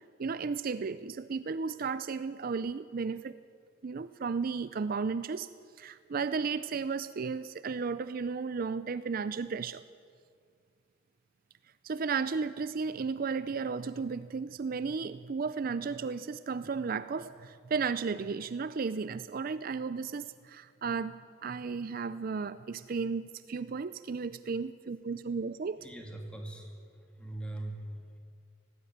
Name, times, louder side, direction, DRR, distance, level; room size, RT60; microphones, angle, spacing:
voice 1, 0.2-3.4 3.8-5.5 5.8-9.8 11.8-25.8, right 5 dB, 50° right, 14 dB, 0.4 m, -34 dB
voice 2, 25.8-28.2, right 1 dB, 5° left, 2 dB, 2.5 m, -42 dB
18.0 x 16.0 x 9.3 m, 2.2 s
head